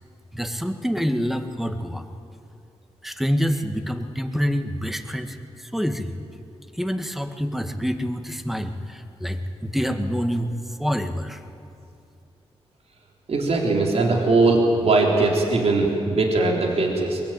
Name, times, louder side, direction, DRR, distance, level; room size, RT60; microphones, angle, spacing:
voice 1, 0.3-2.0 3.0-5.4 5.6-6.2 6.8-10.5 10.8-11.4, equal, ahead, 7 dB, 1.9 m, -26 dB
voice 2, 13.3-17.2, right 3 dB, 65° right, 0 dB, 3.7 m, -20 dB
23.0 x 22.0 x 9.1 m, 2.6 s
cardioid pair, 80°, 11 cm